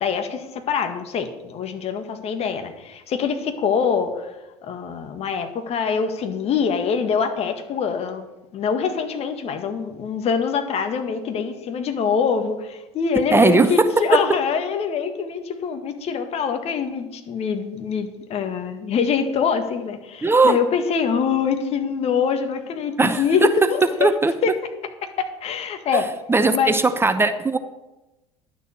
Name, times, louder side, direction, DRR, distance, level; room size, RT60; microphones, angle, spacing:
voice 1, 0.0-4.3 4.6-8.2 8.5-24.1 24.4-24.5 25.2-26.1 26.5-26.8, left 6 dB, 45° left, 7 dB, 1.7 m, -24 dB
voice 2, 13.3-14.2 20.2-20.6 23.0-24.3 25.9-26.0 26.3-27.6, right 3 dB, 15° right, 10 dB, 0.8 m, -18 dB
11.5 x 6.9 x 7.6 m, 1.0 s
hypercardioid pair, 65°, 14 cm